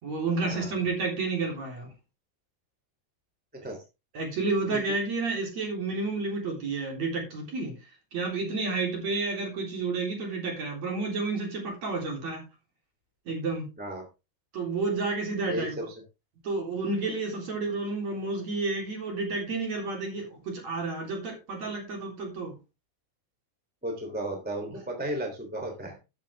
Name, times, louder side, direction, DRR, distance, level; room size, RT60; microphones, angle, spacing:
voice 1, 0.0-1.9 3.6-3.7 4.1-7.8 8.1-12.4 13.3-13.7 14.5-15.8 16.4-22.6, right 3 dB, 35° right, 1 dB, 4.3 m, -30 dB
voice 2, 15.5-15.9 23.8-26.0, right 1 dB, 5° right, 2 dB, 1.7 m, -34 dB
13.0 x 8.8 x 3.5 m, 0.28 s
omnidirectional pair, 5.8 m